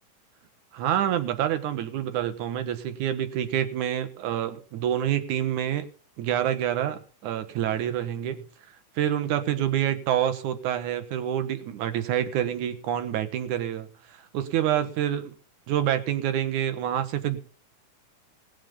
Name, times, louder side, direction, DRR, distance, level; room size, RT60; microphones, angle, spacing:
voice 1, 0.7-5.9 6.2-8.4 9.0-15.4 15.7-17.4, right 10 dB, 70° right, 10 dB, 2.6 m, -27 dB
19.5 x 7.6 x 5.4 m, 0.40 s
omnidirectional pair, 3.6 m